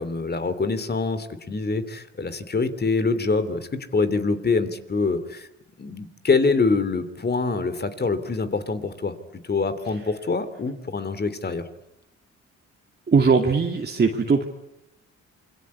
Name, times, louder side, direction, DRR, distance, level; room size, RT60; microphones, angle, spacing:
voice 1, 0.0-5.5 5.8-9.1 9.4-11.6, left 4 dB, 35° left, 12 dB, 3.0 m, -25 dB
voice 2, 13.1-14.5, right 5 dB, 35° right, 2 dB, 2.5 m, -20 dB
27.5 x 23.5 x 8.6 m, 0.86 s
cardioid pair, 90°, 30 cm